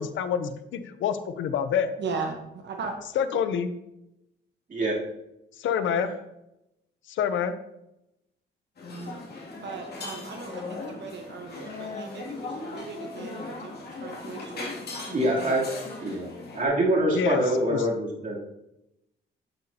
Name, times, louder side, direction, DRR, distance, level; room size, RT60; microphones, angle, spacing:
voice 1, 0.0-1.9 3.2-3.7 5.6-6.1 7.1-7.5 17.1-17.8, left 7 dB, 75° left, 11 dB, 0.7 m, -27 dB
voice 2, 2.0-2.9 9.6-14.8, right 4 dB, 60° right, 3 dB, 1.2 m, -37 dB
sound 1, 8.8-16.7, left 3 dB, 55° left, 2.6 m, -38 dB
voice 3, 15.1-15.7 16.0-18.4, right 1 dB, 40° right, -5 dB, 3.3 m, -25 dB
8.4 x 7.9 x 2.9 m, 0.86 s
cardioid pair, 90°, 20 cm